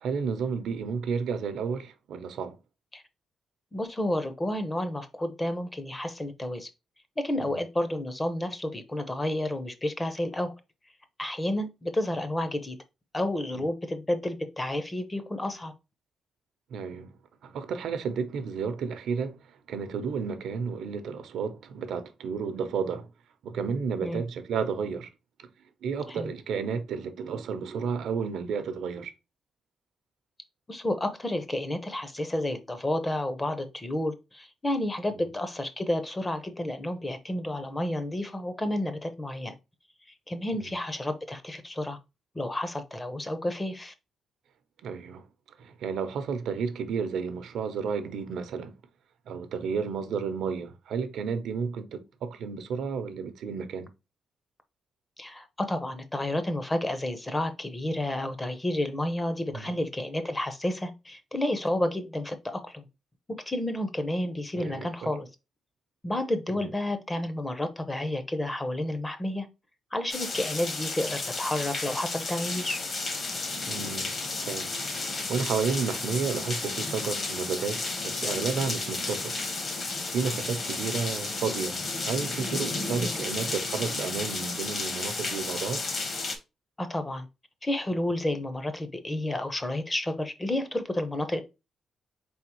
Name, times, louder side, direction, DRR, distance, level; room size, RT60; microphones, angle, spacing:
voice 1, 0.0-2.6 7.4-7.6 13.5-13.6 16.7-17.1 17.4-19.4 19.7-23.1 23.4-25.1 25.4-25.5 25.8-29.1 35.1-35.2 40.5-40.7 44.8-45.2 45.6-48.8 49.3-53.9 59.5-59.7 64.6-65.1 66.5-66.7 73.6-74.1 74.4-79.4 80.1-85.8, right 6 dB, 80° right, 0.6 m, -32 dB
voice 2, 3.7-6.7 7.2-10.5 11.2-12.8 13.1-15.7 24.0-24.2 26.1-26.3 30.7-39.5 40.3-42.0 42.3-43.9 55.2-62.9 63.3-65.3 66.0-69.5 69.9-72.8 83.0-83.2 86.8-87.3 87.6-91.4, left 1 dB, 15° left, 0.6 m, -30 dB
sound 1, 70.1-86.4, left 3 dB, 40° left, 1.0 m, -32 dB
4.5 x 3.5 x 2.9 m
wide cardioid pair, 155°, 0 cm